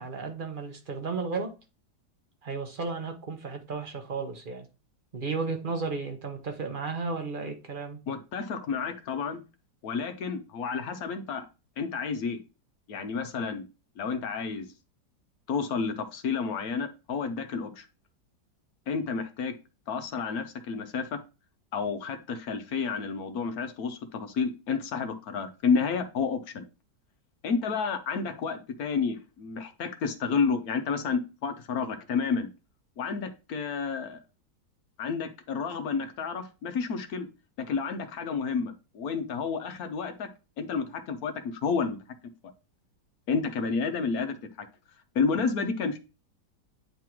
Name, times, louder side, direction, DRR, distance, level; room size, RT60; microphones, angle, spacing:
voice 1, 0.0-1.5 2.4-4.7 5.1-8.0, right 4 dB, 35° right, 0.9 m, -33 dB
voice 2, 8.1-9.4 9.8-11.5 11.8-12.4 12.9-13.7 14.0-14.7 15.5-17.9 18.9-19.5 19.9-21.2 21.7-26.6 27.4-32.5 33.0-34.2 35.0-37.3 37.6-40.3 40.6-42.0 43.3-44.7 45.1-46.0, left 5 dB, 65° left, 1.1 m, -30 dB
9.4 x 3.6 x 3.0 m
omnidirectional pair, 1.9 m